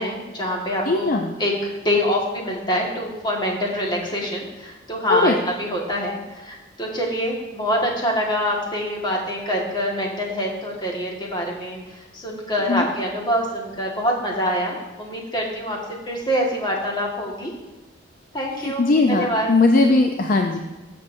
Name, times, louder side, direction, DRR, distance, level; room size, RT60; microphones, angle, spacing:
voice 1, 0.0-17.5 18.3-19.5, equal, 25° left, -1 dB, 1.6 m, -25 dB
voice 2, 0.9-1.4 5.1-5.3 12.7-12.9 18.6-20.6, left 3 dB, 45° left, 4 dB, 0.5 m, -19 dB
14.0 x 6.9 x 2.6 m, 1.1 s
head